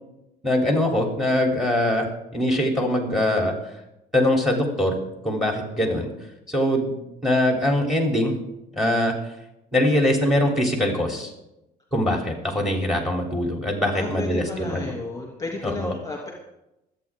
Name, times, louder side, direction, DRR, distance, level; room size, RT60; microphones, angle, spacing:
voice 1, 0.4-2.1 2.3-3.5 4.1-5.0 5.2-6.1 6.5-6.9 7.2-8.3 8.7-9.1 9.7-11.3 11.9-14.9 15.6-15.9, left 1 dB, ahead, 1 dB, 3.3 m, -22 dB
voice 2, 13.9-16.3, left 3 dB, 20° left, -1 dB, 2.6 m, -32 dB
25.5 x 8.6 x 3.7 m, 0.89 s
cardioid pair, 110°, 17 cm